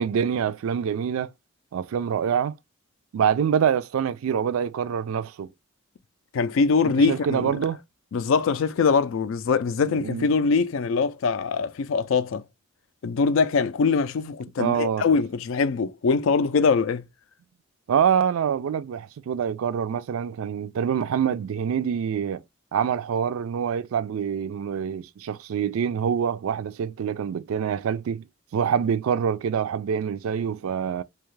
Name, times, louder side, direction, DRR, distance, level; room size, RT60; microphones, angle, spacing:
voice 1, 0.0-1.3 1.7-2.5 3.1-5.5 6.8-7.8 10.0-10.3 14.6-15.0 17.9-22.4 22.7-28.2 28.5-31.0, right 7 dB, 80° right, 0.3 m, -25 dB
voice 2, 6.3-7.6 8.1-12.4 13.0-17.0, left 5 dB, 65° left, 0.4 m, -23 dB
2.8 x 2.3 x 3.1 m
head